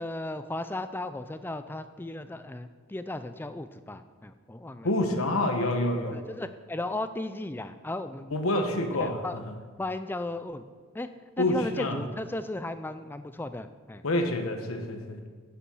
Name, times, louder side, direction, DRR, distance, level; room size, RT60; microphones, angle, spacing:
voice 1, 0.0-4.9 6.1-8.4 9.0-9.3 9.8-10.6 10.9-11.1 11.4-14.0, left 2 dB, 10° left, 11 dB, 0.3 m, -35 dB
voice 2, 4.8-6.2 8.3-9.6 11.4-12.0 14.0-15.2, left 1 dB, 85° left, 5 dB, 1.1 m, -27 dB
11.0 x 7.0 x 5.6 m, 1.5 s
head